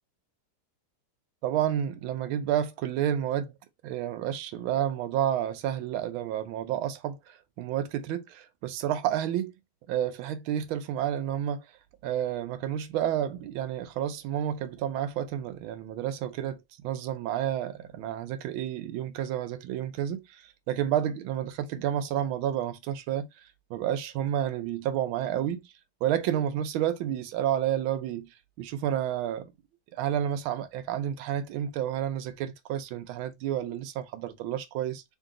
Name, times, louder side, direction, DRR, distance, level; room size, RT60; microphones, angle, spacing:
voice 1, 1.4-3.5 3.8-9.5 9.9-11.6 12.0-23.3 23.7-25.6 26.0-28.3 28.6-29.5 29.9-35.0, right 10 dB, 75° right, 1.4 m, -30 dB
3.8 x 2.6 x 3.7 m
omnidirectional pair, 2.3 m